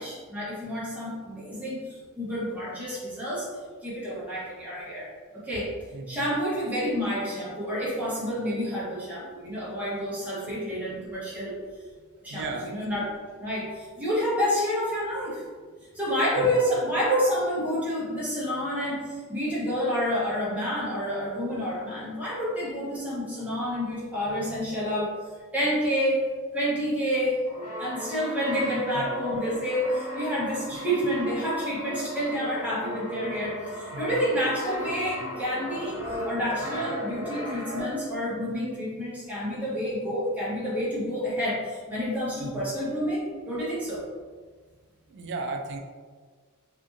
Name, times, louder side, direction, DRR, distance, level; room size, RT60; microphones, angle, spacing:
voice 1, 0.0-3.5 3.8-5.7 6.1-11.6 12.2-13.0 13.4-15.4 15.9-25.2 25.5-26.3 26.5-27.4 27.8-44.0, equal, 5° right, -9 dB, 0.9 m, -29 dB
voice 2, 5.9-6.3 10.8-11.1 12.3-12.7 16.4-16.5 28.9-29.3 33.9-34.1 42.4-42.6 45.1-45.8, right 3 dB, 50° right, 3 dB, 0.3 m, -36 dB
Brass instrument, 27.4-38.3, equal, 90° left, 0.9 m, -36 dB
2.6 x 2.5 x 2.5 m, 1.5 s
head